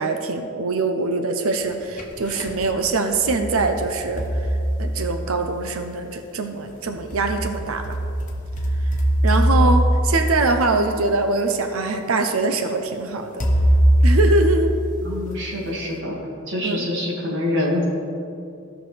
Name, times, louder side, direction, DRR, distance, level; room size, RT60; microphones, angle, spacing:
voice 1, 0.0-4.2 4.8-7.8 9.2-13.5 14.0-14.7 16.6-16.8, right 3 dB, 75° right, 6 dB, 0.6 m, -23 dB
sound 1, 1.6-2.6 3.1-5.5 6.7-11.1 11.9-12.0 13.4-15.3, equal, 35° left, 1.1 m, -21 dB
voice 2, 15.0-16.2 16.5-17.8, left 1 dB, 60° right, -4 dB, 2.1 m, -25 dB
15.5 x 6.0 x 3.3 m, 2.6 s
head